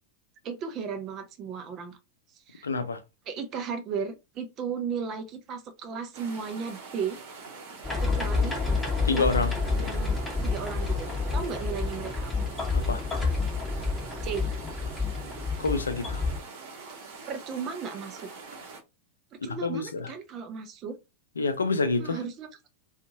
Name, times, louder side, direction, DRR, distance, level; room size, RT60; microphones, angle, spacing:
voice 1, 0.4-2.0 2.3-2.7 3.3-7.2 8.0-8.6 9.1-9.4 9.8-12.5 14.2-14.5 17.3-18.3 19.3-21.0 22.0-22.5, right 6 dB, 35° right, 0.5 m, -35 dB
voice 2, 2.6-3.0 9.0-9.5 12.7-13.0 15.6-16.3 19.4-20.1 21.4-22.2, left 3 dB, 70° left, 0.5 m, -27 dB
sound 1, 6.1-18.8, right 4 dB, 55° right, 0.9 m, -44 dB
sound 2, 7.8-16.4, left 4 dB, 5° left, 0.9 m, -29 dB
2.6 x 2.4 x 2.8 m
figure-of-eight pair, 90°, 0 cm